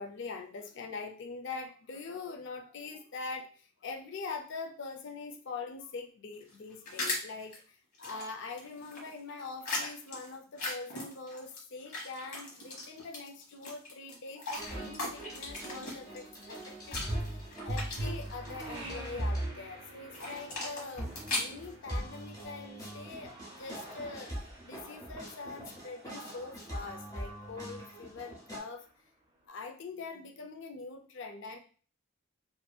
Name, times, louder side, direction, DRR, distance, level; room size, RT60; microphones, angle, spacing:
voice 1, 0.0-24.4 24.6-28.9 29.5-31.6, left 4 dB, 55° left, 3 dB, 0.4 m, -43 dB
sound 1, 6.4-7.6 7.9-11.6 11.9-18.7 20.1-22.4, left 2 dB, 90° left, 1.1 m, -39 dB
sound 2, 14.5-19.6 21.0-28.6, right 1 dB, 15° left, 0.7 m, -40 dB
sound 3, 15.2-29.5, right 2 dB, 25° right, 0.4 m, -53 dB
2.7 x 2.5 x 2.3 m, 0.40 s
head